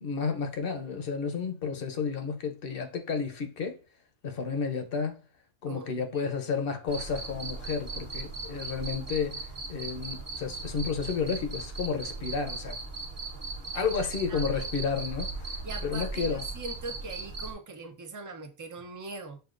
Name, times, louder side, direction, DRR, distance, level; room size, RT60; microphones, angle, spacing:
voice 1, 0.0-3.8 4.2-5.2 5.6-12.8 13.7-16.4, left 5 dB, 55° left, 0.9 m, -32 dB
voice 2, 5.7-6.3 13.7-13.9 14.3-14.7 15.6-19.4, right 3 dB, 30° right, 0.4 m, -42 dB
Cricket, 6.9-17.5, right 3 dB, 45° right, 1.1 m, -38 dB
6.5 x 2.4 x 2.5 m
omnidirectional pair, 1.3 m